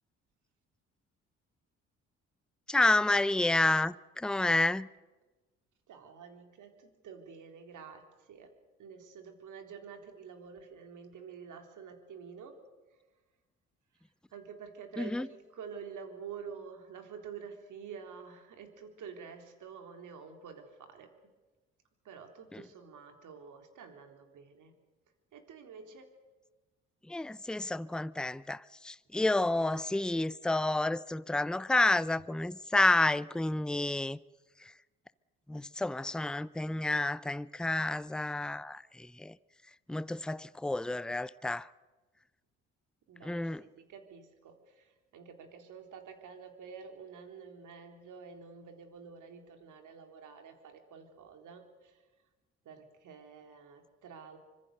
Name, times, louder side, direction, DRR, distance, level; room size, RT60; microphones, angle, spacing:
voice 1, 2.7-4.9 15.0-15.3 22.5-22.6 27.1-34.2 35.5-39.3 39.9-41.7 43.2-43.6, left 2 dB, ahead, 0.7 m, -30 dB
voice 2, 5.9-8.5 8.8-12.6 14.3-21.1 22.0-24.7 25.3-26.1 43.1-52.0 52.7-54.4, right 6 dB, 60° right, 3.9 m, -48 dB
25.0 x 22.0 x 6.7 m
hypercardioid pair, 50°, 33 cm